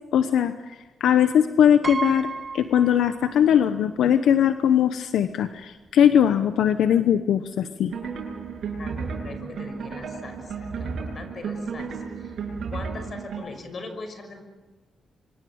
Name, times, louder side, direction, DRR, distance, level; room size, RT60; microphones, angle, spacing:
voice 1, 0.1-0.7 1.0-2.3 2.5-7.9, left 9 dB, 90° left, 9 dB, 1.0 m, -20 dB
Piano, 1.8-3.7 4.0-4.1 5.2-5.3 5.6-5.9, right 4 dB, 35° right, 0.9 m, -33 dB
sound 1, 7.9-13.4, right 5 dB, 75° right, 7.1 m, -33 dB
voice 2, 8.8-12.3 12.7-14.4, left 3 dB, 50° left, 7 dB, 6.2 m, -40 dB
26.5 x 24.5 x 8.7 m, 1.2 s
cardioid pair, 95°, 0 cm